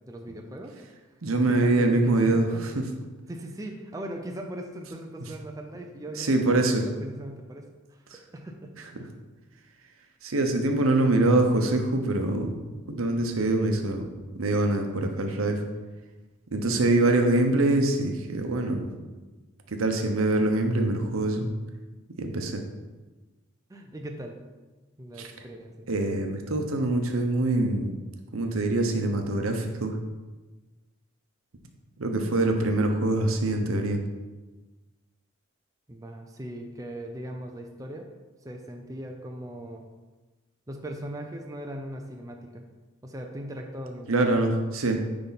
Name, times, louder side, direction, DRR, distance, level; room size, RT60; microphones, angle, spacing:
voice 1, 0.1-0.7 1.4-2.8 3.3-8.7 16.5-16.8 23.7-24.4 25.0-25.9 35.9-38.1 38.4-39.8 40.7-42.7 43.0-44.6, right 1 dB, 15° right, 2 dB, 0.5 m, -39 dB
voice 2, 1.2-2.9 6.2-6.8 10.2-12.6 12.9-15.6 16.5-18.9 19.7-21.5 22.2-22.6 25.2-25.3 25.9-27.9 28.3-30.0 32.0-34.0 44.1-45.0, right 2 dB, 85° right, 4 dB, 0.8 m, -24 dB
9.7 x 3.4 x 4.1 m, 1.2 s
head